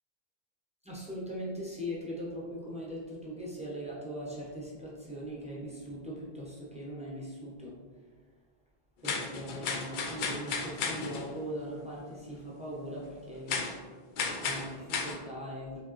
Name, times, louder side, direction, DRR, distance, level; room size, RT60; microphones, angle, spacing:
voice 1, 0.8-7.8 9.0-13.6 14.4-15.8, equal, 5° right, -6 dB, 1.0 m, -40 dB
sound 1, 9.0-11.3 13.5-13.8 14.2-15.2, left 4 dB, 60° left, 0.7 m, -34 dB
5.2 x 3.3 x 3.1 m, 1.5 s
omnidirectional pair, 1.0 m